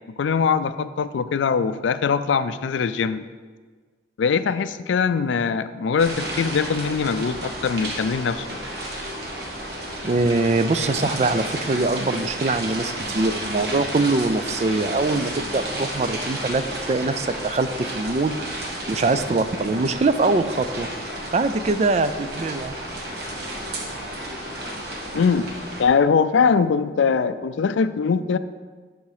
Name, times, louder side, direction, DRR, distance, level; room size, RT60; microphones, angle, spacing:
voice 1, 0.2-3.2 4.2-8.6 11.1-11.2 25.1-25.5 25.8-28.4, left 5 dB, 85° left, 14 dB, 0.4 m, -22 dB
sound 1, 6.0-25.8, right 1 dB, 55° right, 1.2 m, -32 dB
voice 2, 10.0-18.4 18.9-20.9 21.3-22.7, right 3 dB, 35° right, 11 dB, 0.3 m, -23 dB
11.0 x 3.9 x 4.9 m, 1.5 s
head